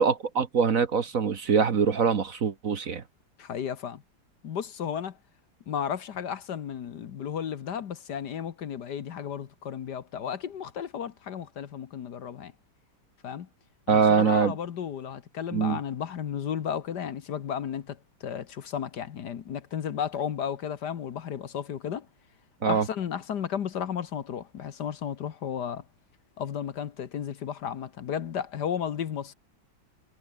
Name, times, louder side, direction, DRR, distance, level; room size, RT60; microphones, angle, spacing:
voice 1, 0.0-3.0 13.9-14.6 15.5-15.8 22.6-22.9, right 6 dB, 45° right, 1.5 m, -23 dB
voice 2, 3.4-4.0 4.4-5.2 5.7-12.5 13.2-13.5 13.9-22.1 22.7-25.8 26.4-29.3, left 8 dB, 60° left, 1.7 m, -33 dB
omnidirectional pair, 2.1 m